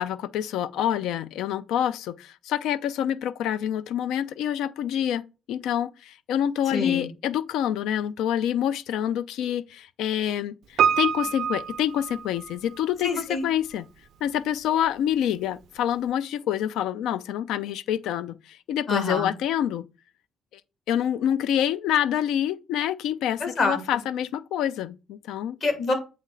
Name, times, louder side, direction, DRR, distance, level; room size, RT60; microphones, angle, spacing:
voice 1, 0.0-5.2 5.5-13.1 13.4-13.8 14.2-19.9 20.5-20.6 20.9-25.6, left 10 dB, 90° left, 0.4 m, -27 dB
voice 2, 6.7-7.1 13.0-13.4 18.9-19.3 23.4-23.8 25.6-25.9, left 3 dB, 50° left, 2.0 m, -26 dB
Piano, 10.8-12.8 13.1-13.2, right 8 dB, 75° right, 0.3 m, -25 dB
7.8 x 3.2 x 3.8 m
cardioid pair, 90°, 0 cm